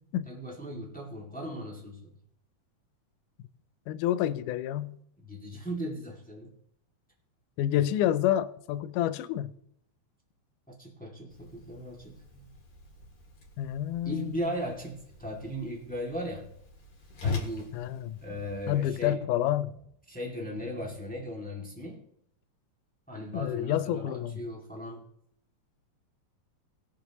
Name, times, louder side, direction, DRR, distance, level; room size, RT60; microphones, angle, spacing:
voice 1, 0.2-2.1 5.2-6.5 10.8-12.5 14.0-16.4 17.2-17.8 18.2-19.2 20.1-22.0 23.1-25.0, equal, 5° left, 1.5 m, -37 dB
voice 2, 3.9-5.0 7.6-9.5 13.6-14.4 17.7-18.2 18.7-19.8 23.3-24.4, left 12 dB, 85° left, 2.1 m, -29 dB
Whoosh swoosh swish, 11.3-19.1, left 4 dB, 55° left, 3.0 m, -41 dB
20.5 x 7.5 x 3.0 m
omnidirectional pair, 3.6 m